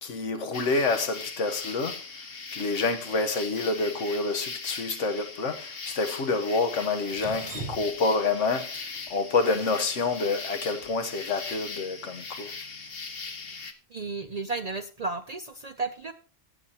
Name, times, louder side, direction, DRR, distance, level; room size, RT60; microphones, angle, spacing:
voice 1, 0.0-12.5, left 3 dB, 80° left, 1.5 m, -28 dB
sound 1, 0.5-13.7, left 4 dB, 55° left, 1.3 m, -39 dB
Drip, 7.1-11.2, right 3 dB, 30° right, 2.8 m, -42 dB
voice 2, 13.9-16.1, right 3 dB, 50° right, 0.5 m, -33 dB
17.5 x 7.9 x 2.9 m
omnidirectional pair, 1.2 m